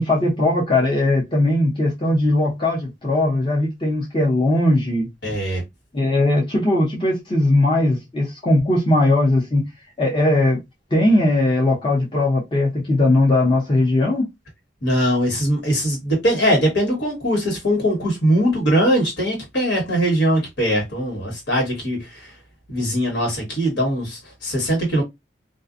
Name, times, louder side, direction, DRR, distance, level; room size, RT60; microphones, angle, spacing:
voice 1, 0.0-5.1 5.9-9.6 10.0-10.6 10.9-14.2, left 1 dB, 25° left, 0.7 m, -19 dB
voice 2, 5.2-5.6 14.8-22.3 22.7-25.0, equal, 75° left, 1.5 m, -21 dB
2.5 x 2.2 x 2.5 m
head